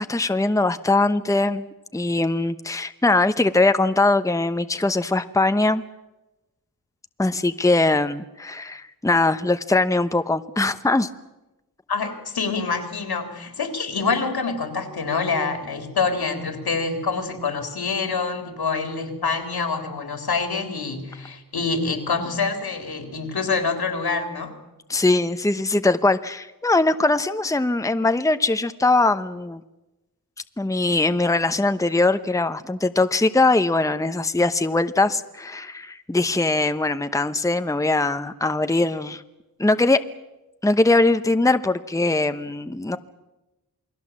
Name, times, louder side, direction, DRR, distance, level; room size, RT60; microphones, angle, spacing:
voice 1, 0.0-1.7 1.9-5.8 7.2-11.1 24.9-29.6 30.6-39.2 39.6-40.0 40.6-43.0, left 2 dB, 10° left, 10 dB, 0.9 m, -21 dB
voice 2, 11.9-24.5, left 4 dB, 80° left, 6 dB, 3.8 m, -26 dB
28.5 x 20.5 x 7.5 m, 1.0 s
wide cardioid pair, 80°, 37 cm